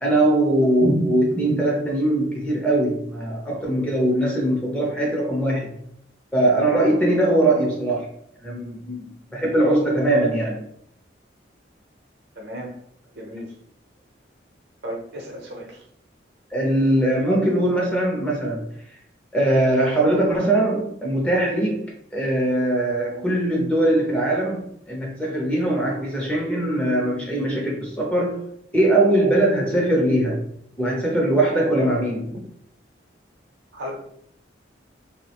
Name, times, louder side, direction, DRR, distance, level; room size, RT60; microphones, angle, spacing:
voice 1, 0.0-5.7 6.3-8.0 8.4-10.7 16.5-18.7 19.3-28.4 28.7-30.4 30.8-32.3, right 1 dB, 5° left, -2 dB, 0.5 m, -21 dB
voice 2, 12.4-12.7 13.1-13.5 14.8-15.8 33.7-34.0, equal, 65° right, 0 dB, 0.7 m, -34 dB
3.1 x 2.0 x 2.8 m, 0.68 s
head